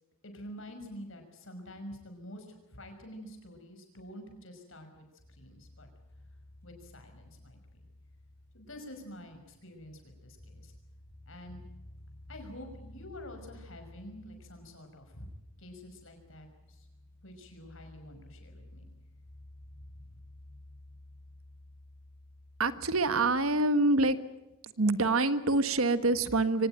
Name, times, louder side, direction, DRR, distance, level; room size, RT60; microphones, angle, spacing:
voice 1, 0.2-5.9 6.6-7.6 8.5-10.7 11.3-11.6 12.3-15.3 15.6-16.9 17.2-18.8 20.1-20.2, equal, 65° left, 5 dB, 5.8 m, -48 dB
sound 1, 5.2-23.6, left 1 dB, 10° left, 7.0 m, -54 dB
voice 2, 22.6-24.2 24.8-26.7, right 2 dB, 80° right, 12 dB, 1.4 m, -26 dB
24.5 x 18.5 x 9.0 m, 0.99 s
head